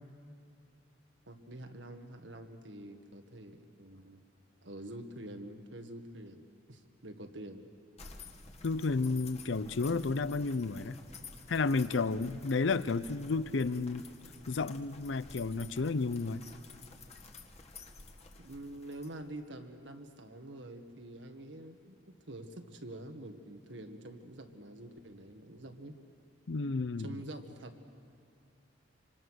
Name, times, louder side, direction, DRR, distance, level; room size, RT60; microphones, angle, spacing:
voice 1, 1.3-4.2 4.6-6.4 6.7-7.7 18.4-26.0 27.0-27.8, right 1 dB, 75° right, 6 dB, 1.7 m, -47 dB
sound 1, 8.0-19.5, left 4 dB, 35° left, 1.6 m, -52 dB
voice 2, 8.6-11.0 11.5-14.0 14.5-16.4 26.5-27.1, left 4 dB, 80° left, 16 dB, 0.6 m, -32 dB
26.0 x 25.5 x 6.4 m, 2.4 s
head